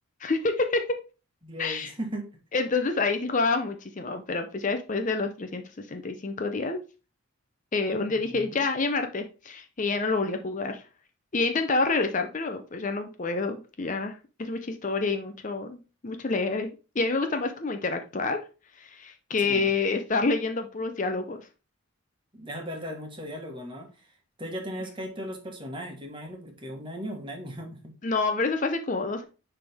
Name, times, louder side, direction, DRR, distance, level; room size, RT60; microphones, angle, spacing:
voice 1, 0.2-1.0 1.6-1.9 2.5-5.6 5.9-6.8 7.7-10.8 11.3-16.7 17.0-18.4 18.8-21.4 28.0-29.2, left 3 dB, 35° left, 7 dB, 0.5 m, -28 dB
voice 2, 1.4-2.3 8.1-8.6 19.4-19.7 22.3-23.9 24.4-27.9, equal, 25° right, 3 dB, 1.4 m, -37 dB
10.0 x 3.4 x 3.5 m, 0.33 s
head